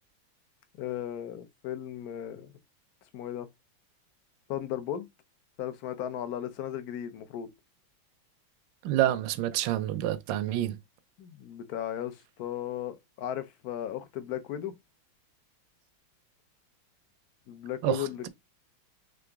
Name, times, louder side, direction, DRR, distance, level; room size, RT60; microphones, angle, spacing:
voice 1, 0.8-2.5 3.1-3.5 4.5-5.1 5.6-7.5 11.2-14.7 17.5-18.3, left 11 dB, 70° left, 0.9 m, -36 dB
voice 2, 8.8-10.8 17.8-18.3, right 13 dB, 75° right, 1.2 m, -28 dB
3.9 x 3.5 x 3.4 m
omnidirectional pair, 2.3 m